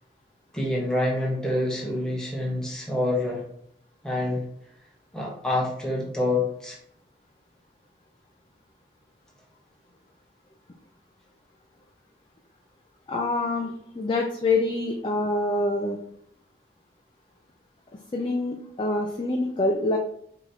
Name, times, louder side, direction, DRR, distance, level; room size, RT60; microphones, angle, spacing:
voice 1, 0.5-3.4 4.0-4.4 5.1-6.8, left 1 dB, 5° left, -3 dB, 0.8 m, -27 dB
voice 2, 13.1-16.0 18.1-20.0, left 2 dB, 25° left, 1 dB, 0.3 m, -26 dB
4.8 x 3.0 x 2.6 m, 0.71 s
head